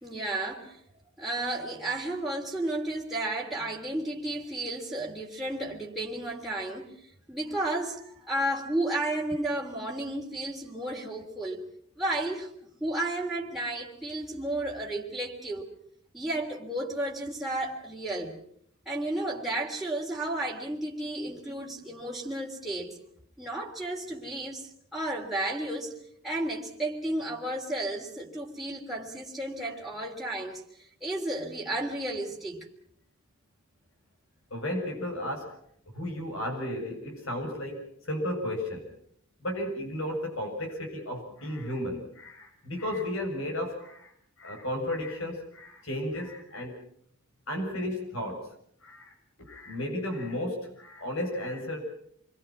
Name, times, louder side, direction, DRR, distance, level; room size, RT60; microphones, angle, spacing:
voice 1, 0.0-0.8 1.2-6.9 7.3-11.7 12.0-12.5 12.8-15.7 16.1-18.4 18.8-22.9 23.4-25.9 26.2-32.7, right 1 dB, ahead, -4 dB, 3.3 m, -33 dB
voice 2, 34.5-35.6 35.9-38.8 39.4-44.1 44.4-46.8 47.5-48.5 48.8-51.9, left 1 dB, 70° left, 3 dB, 7.3 m, -34 dB
28.0 x 23.0 x 6.1 m, 0.65 s
head